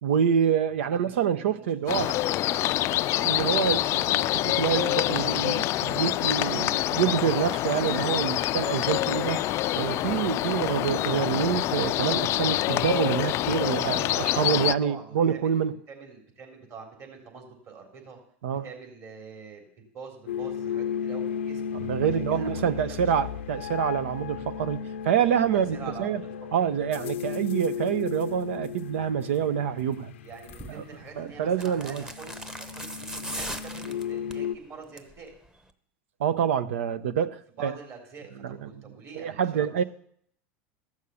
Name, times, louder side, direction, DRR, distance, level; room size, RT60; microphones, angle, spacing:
voice 1, 0.0-2.1 3.2-9.4 9.7-15.7 18.4-18.7 21.8-26.2 26.5-30.1 30.7-30.8 31.2-32.0 36.2-37.7 38.4-38.7 39.1-39.8, right 8 dB, 80° right, 0.7 m, -27 dB
voice 2, 0.8-3.1 14.6-18.2 18.6-19.7 19.9-21.7 22.0-23.4 25.5-26.7 30.2-35.3 37.6-39.8, right 5 dB, 45° right, 3.6 m, -45 dB
sound 1, 1.9-14.7, left 15 dB, 45° left, 0.4 m, -26 dB
sound 2, 20.3-34.6, left 8 dB, 90° left, 0.6 m, -35 dB
sound 3, 30.5-30.8 31.5-34.5 34.8-35.2 35.5-35.6, right 1 dB, 10° right, 0.9 m, -38 dB
14.5 x 6.5 x 7.0 m
hypercardioid pair, 105°, 7 cm